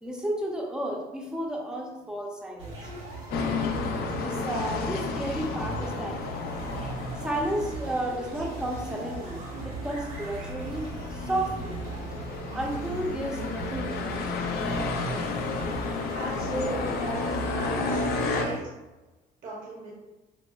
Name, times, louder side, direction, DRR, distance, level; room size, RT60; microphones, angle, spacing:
voice 1, 0.0-2.9 4.2-6.2 7.2-10.9 11.1-11.8 12.5-14.7 16.5-18.5, right 1 dB, 5° right, -1 dB, 0.6 m, -33 dB
sound 1, 2.6-18.6, right 3 dB, 90° right, 1.2 m, -38 dB
sound 2, 3.3-18.4, left 4 dB, 65° left, 0.4 m, -32 dB
voice 2, 16.0-16.9 17.6-18.6 19.4-19.9, right 1 dB, 55° right, -5 dB, 0.8 m, -39 dB
4.2 x 2.0 x 2.2 m, 1.1 s
cardioid pair, 110°, 17 cm